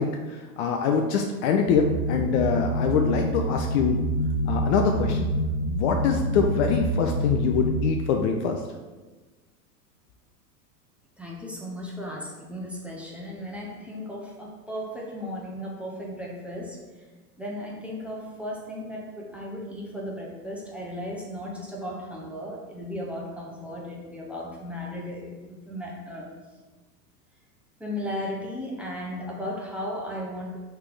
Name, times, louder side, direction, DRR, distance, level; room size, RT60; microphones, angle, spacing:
voice 1, 0.0-4.0 4.5-5.3 5.7-8.6, left 6 dB, 45° left, 4 dB, 0.5 m, -24 dB
sound 1, 1.7-7.9, equal, 70° left, 1.3 m, -27 dB
voice 2, 11.2-17.1 17.4-26.3 27.8-30.6, left 1 dB, 5° right, -4 dB, 0.7 m, -35 dB
3.3 x 3.3 x 4.8 m, 1.2 s
hypercardioid pair, 100°, 48 cm